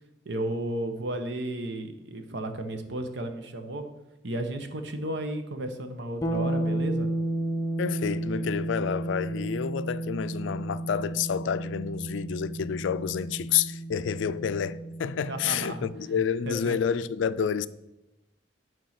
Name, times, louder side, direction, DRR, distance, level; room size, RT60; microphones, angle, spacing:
voice 1, 0.2-3.9 4.2-7.1 15.3-15.9 16.1-16.2 16.5-16.8, right 1 dB, 70° right, 1.0 m, -33 dB
sound 1, 6.2-16.0, right 1 dB, 20° left, 0.7 m, -32 dB
voice 2, 7.8-17.7, left 7 dB, 80° left, 0.4 m, -29 dB
9.1 x 4.6 x 5.8 m
head